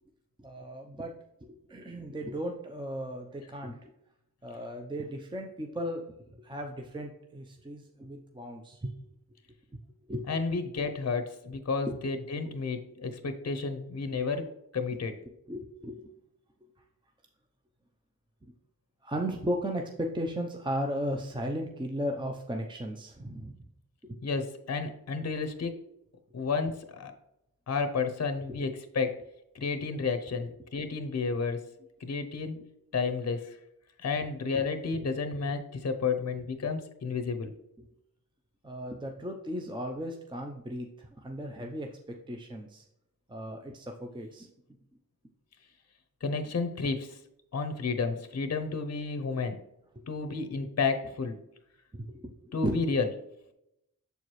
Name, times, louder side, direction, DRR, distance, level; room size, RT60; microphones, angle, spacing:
voice 1, 0.4-1.1 1.4-3.9 4.4-8.9 10.1-10.3 11.9-12.0 12.5-12.7 14.9-15.0 15.3-16.1 18.4-18.5 19.0-23.6 24.0-24.2 28.5-28.6 34.9-35.0 37.8-37.9 38.6-42.8 43.3-44.5 50.0-50.1 51.9-53.0, equal, 15° right, 2 dB, 0.6 m, -36 dB
voice 2, 10.3-15.2 24.2-25.7 26.3-27.1 27.7-29.2 29.5-31.7 32.0-32.6 32.9-33.6 34.0-37.5 46.2-47.2 47.5-49.6 50.1-51.4 52.5-53.1, left 4 dB, 45° left, 7 dB, 0.7 m, -31 dB
6.8 x 4.6 x 3.1 m, 0.83 s
wide cardioid pair, 70°, 35 cm